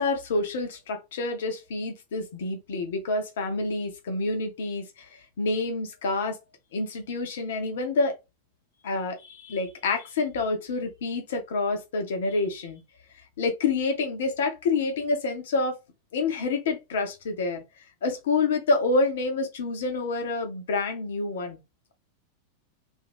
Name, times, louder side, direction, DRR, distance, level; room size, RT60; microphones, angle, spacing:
voice 1, 0.0-6.4 6.7-8.2 8.8-12.8 13.4-15.8 16.1-17.6 18.0-21.6, left 3 dB, 60° left, 0.9 m, -28 dB
2.7 x 2.6 x 3.5 m
figure-of-eight pair, 90°, 0 cm